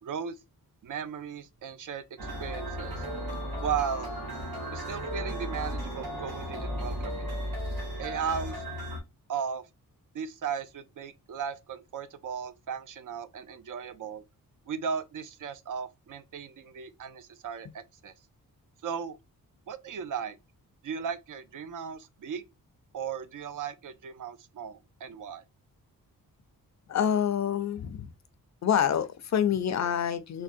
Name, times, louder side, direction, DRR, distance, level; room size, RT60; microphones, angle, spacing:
voice 1, 0.0-0.3 0.8-2.0 2.4-3.0 3.6-4.1 4.7-7.3 8.0-8.6 9.3-9.6 10.1-14.2 14.7-18.1 18.8-19.2 19.7-20.4 20.8-22.4 22.9-25.4, right 7 dB, 60° right, 0.5 m, -36 dB
sound 1, 2.2-9.0, equal, 85° right, 1.4 m, -35 dB
voice 2, 26.9-28.1 28.6-30.4, left 8 dB, 50° left, 0.5 m, -27 dB
3.5 x 2.1 x 2.5 m
cardioid pair, 90°, 36 cm